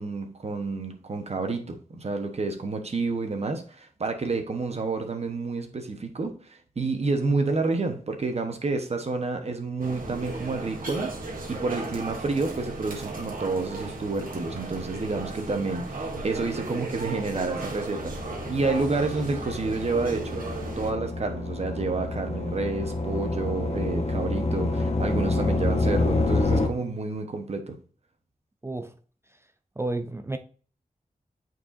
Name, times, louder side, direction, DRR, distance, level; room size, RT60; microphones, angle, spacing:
voice 1, 0.0-18.1 18.5-20.4 20.8-27.8, right 3 dB, 50° right, 1.2 m, -29 dB
sound 1, 9.8-20.9, right 2 dB, 80° right, 1.7 m, -35 dB
sound 2, 18.0-26.7, left 2 dB, 50° left, 1.1 m, -28 dB
voice 2, 28.6-28.9 29.8-30.4, right 2 dB, 20° right, 0.5 m, -31 dB
8.8 x 4.6 x 2.7 m
wide cardioid pair, 115°, 14 cm